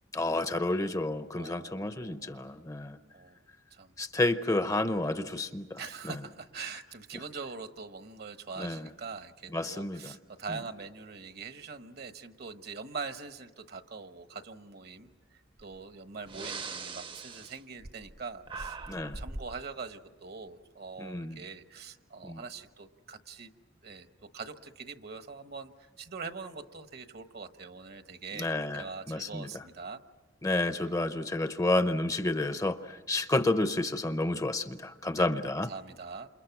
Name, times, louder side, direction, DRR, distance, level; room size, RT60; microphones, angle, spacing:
voice 1, 0.1-3.0 4.0-6.1 8.6-8.9 9.5-10.2 10.5-10.6 18.9-19.2 21.0-21.4 22.2-22.4 28.3-29.6 30.4-35.7, left 2 dB, 20° left, 10 dB, 0.7 m, -30 dB
voice 2, 1.4-2.5 3.1-3.4 3.7-3.9 5.8-18.8 19.0-23.5 23.8-24.1 24.3-30.0 35.2-35.3 35.6-36.3, right 4 dB, 55° right, 9 dB, 1.2 m, -43 dB
Breathing, 15.6-15.7 16.2-18.2 18.4-19.5, right 4 dB, 25° right, 0.8 m, -40 dB
28.5 x 28.0 x 6.0 m, 1.2 s
head